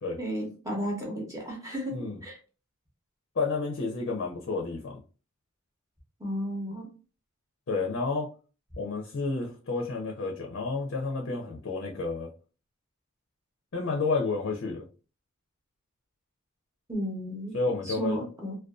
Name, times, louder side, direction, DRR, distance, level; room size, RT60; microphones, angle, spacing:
voice 1, 0.2-2.4 6.2-6.9 16.9-17.6 17.8-18.6, equal, 15° right, 0.7 m, -33 dB
voice 2, 3.4-5.0 7.7-8.3 8.8-12.3 13.7-14.8 17.5-18.2, left 3 dB, 55° left, 0.5 m, -30 dB
2.4 x 2.2 x 2.3 m
head